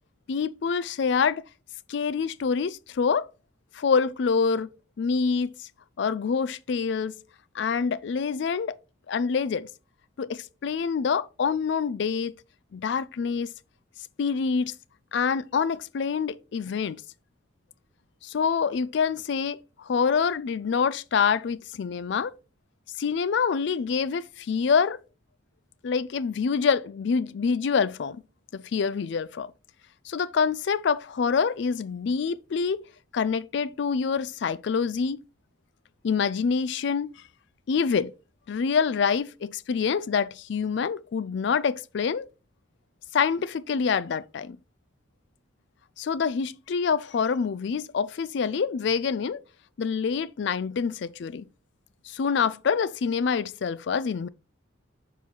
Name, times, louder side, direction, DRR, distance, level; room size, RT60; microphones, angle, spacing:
voice 1, 0.3-1.4 1.9-3.3 3.7-4.7 5.0-5.6 6.0-7.1 7.5-8.8 9.1-9.7 10.2-12.3 12.7-13.5 14.2-14.8 15.1-17.0 18.2-22.3 23.0-25.0 25.8-28.2 28.5-29.5 30.1-32.8 33.1-35.2 36.0-37.1 37.7-38.1 38.5-42.3 43.1-44.6 46.0-49.4 49.8-51.4 52.1-54.3, left 6 dB, 55° left, 0.3 m, -26 dB
7.2 x 4.5 x 3.7 m
head